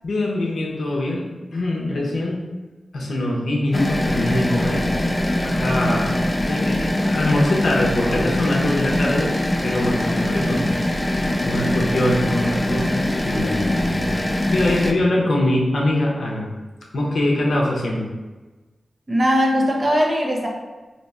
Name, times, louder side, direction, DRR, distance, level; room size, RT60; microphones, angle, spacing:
voice 1, 0.0-2.4 2.9-4.9 5.4-6.2 6.5-10.8 11.4-14.1 14.5-16.5 16.9-18.1, left 1 dB, 75° left, -2 dB, 0.7 m, -23 dB
sound 1, 3.7-14.9, left 1 dB, 15° left, 0.3 m, -22 dB
voice 2, 19.1-20.5, equal, 30° right, -1 dB, 0.6 m, -19 dB
2.8 x 2.3 x 4.1 m, 1.2 s
wide cardioid pair, 90°, 0 cm